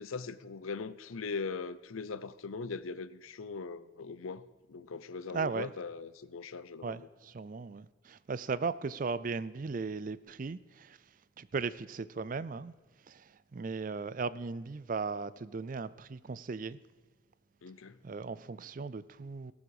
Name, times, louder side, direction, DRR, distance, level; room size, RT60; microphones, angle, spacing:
voice 1, 0.0-7.1 17.6-18.0, left 4 dB, 85° left, 0.6 m, -40 dB
voice 2, 5.3-5.7 6.8-11.0 11.4-12.7 13.1-16.8 18.0-19.5, right 4 dB, 40° right, 0.4 m, -37 dB
18.5 x 7.2 x 4.9 m
head